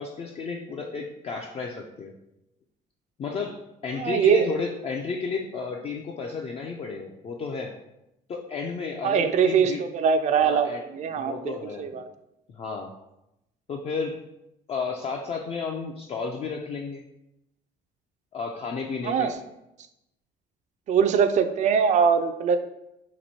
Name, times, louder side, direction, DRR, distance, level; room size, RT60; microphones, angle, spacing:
voice 1, 0.0-2.1 3.2-7.7 8.3-9.8 10.4-10.8 11.1-11.9 12.5-12.9 13.7-14.2 14.7-17.0 18.3-19.3, left 4 dB, 35° left, 1 dB, 0.4 m, -32 dB
voice 2, 4.0-4.5 9.0-12.1 19.0-19.4 20.9-22.6, right 7 dB, 45° right, 9 dB, 0.4 m, -22 dB
3.0 x 2.5 x 4.2 m, 0.86 s
cardioid pair, 110°, 17 cm